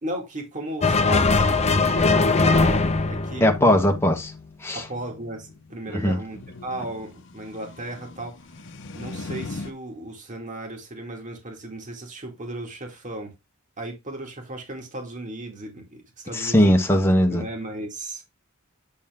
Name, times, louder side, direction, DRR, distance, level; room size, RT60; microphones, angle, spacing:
voice 1, 0.0-3.4 4.7-13.3 13.8-17.0 17.3-18.2, right 1 dB, 35° right, 2.5 m, -35 dB
sound 1, 0.8-4.3, left 3 dB, 30° left, 0.7 m, -21 dB
voice 2, 3.4-4.3 4.6-4.8 5.9-6.2 16.3-17.4, equal, 10° left, 1.2 m, -19 dB
sound 2, 5.4-9.7, left 2 dB, 60° left, 0.8 m, -39 dB
8.7 x 4.2 x 3.6 m
head